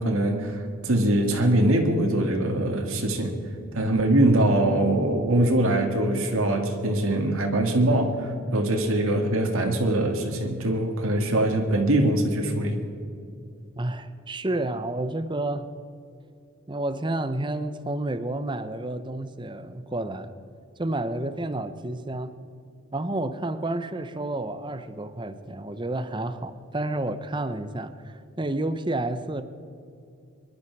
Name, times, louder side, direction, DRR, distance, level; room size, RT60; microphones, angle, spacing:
voice 1, 0.0-3.4 3.7-12.8, right 1 dB, 75° right, 2 dB, 1.9 m, -23 dB
voice 2, 13.8-15.7 16.7-20.3 20.8-22.4 22.9-29.4, right 2 dB, 20° right, 11 dB, 0.7 m, -30 dB
24.5 x 11.5 x 4.7 m, 2.5 s
head